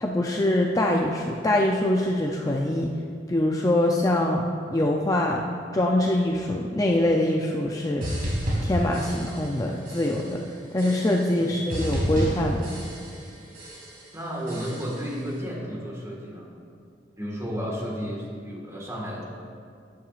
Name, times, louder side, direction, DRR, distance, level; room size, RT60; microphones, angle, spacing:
voice 1, 0.0-2.9 3.3-5.5 5.7-8.1 8.6-10.4 10.7-12.7, left 1 dB, 20° left, 0 dB, 0.5 m, -24 dB
sound 1, 8.0-9.6 9.9-10.4 10.8-11.4 11.7-13.3 13.5-14.1 14.5-15.1, equal, 55° right, 2.7 m, -31 dB
voice 2, 14.1-16.5 17.2-19.2, equal, 15° right, -2 dB, 1.7 m, -32 dB
13.0 x 10.5 x 2.5 m, 2.3 s
head